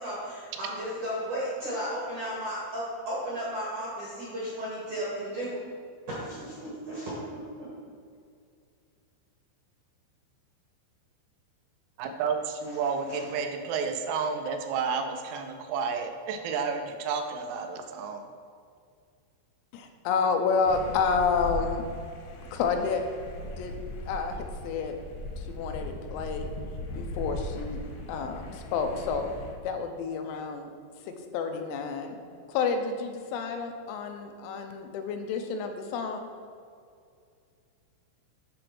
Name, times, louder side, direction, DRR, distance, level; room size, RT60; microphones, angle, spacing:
voice 1, 0.0-5.6 6.1-7.7 13.1-13.3, equal, 70° right, -7 dB, 1.8 m, -34 dB
voice 2, 12.0-18.3, right 5 dB, 85° right, 5 dB, 3.4 m, -31 dB
voice 3, 19.7-21.9 22.5-23.0 23.4-23.7 24.0-25.0 25.4-26.5 27.0-27.8 28.1-29.3 29.6-30.7 31.0-32.2 32.5-36.3, left 5 dB, 90° left, 5 dB, 3.5 m, -30 dB
sound 1, 20.6-29.5, left 1 dB, 75° left, 2.4 m, -38 dB
9.9 x 3.9 x 6.0 m, 2.3 s
omnidirectional pair, 6.0 m